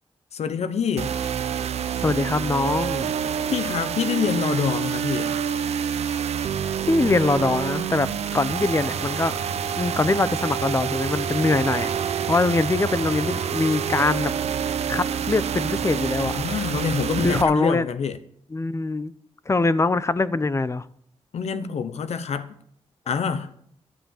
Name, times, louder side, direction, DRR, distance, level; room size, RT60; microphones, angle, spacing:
voice 1, 0.3-1.1 3.5-5.4 16.3-18.2 21.3-22.5 23.1-23.5, left 6 dB, 85° left, 0.9 m, -26 dB
sound 1, 1.0-17.4, right 8 dB, 90° right, 0.8 m, -27 dB
voice 2, 2.0-3.1 6.9-9.4 9.8-11.9 12.3-14.3 14.6-16.4 17.2-17.9 18.5-19.1 19.5-20.8, left 3 dB, 25° left, 0.7 m, -23 dB
13.0 x 7.8 x 7.3 m
wide cardioid pair, 95°, 11 cm